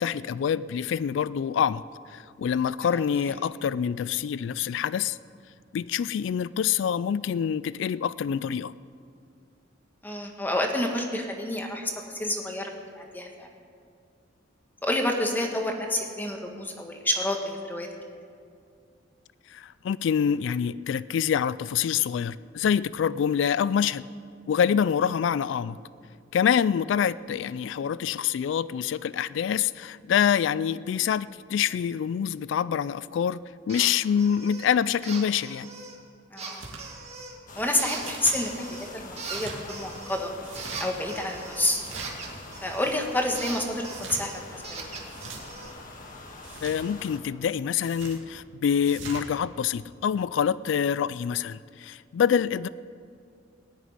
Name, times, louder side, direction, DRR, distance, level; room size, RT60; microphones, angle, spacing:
voice 1, 0.0-5.2 5.7-8.7 19.5-24.1 24.5-25.8 26.3-33.4 33.7-35.7 46.6-52.7, left 8 dB, 70° left, 18 dB, 0.3 m, -26 dB
voice 2, 10.0-13.5 14.8-17.9 36.3-36.6 37.5-40.3 40.8-41.8 42.6-44.9, left 1 dB, 10° left, 2 dB, 1.5 m, -29 dB
sound 1, 33.7-33.9 34.2-34.7 35.0-36.0 36.4-37.4 37.8-38.9 39.2-43.0 43.4-45.7, right 4 dB, 35° right, 1.8 m, -40 dB
sound 2, 36.5-36.8 38.0-38.4 39.1-39.6 40.4-40.9 41.7-42.3 43.8-44.2 45.0-45.4 46.4-46.8 47.8-48.2 48.8-49.2, right 4 dB, 85° right, 2.4 m, -41 dB
sound 3, 37.5-47.2, left 2 dB, 45° left, 1.6 m, -44 dB
19.0 x 6.5 x 9.5 m, 2.3 s
head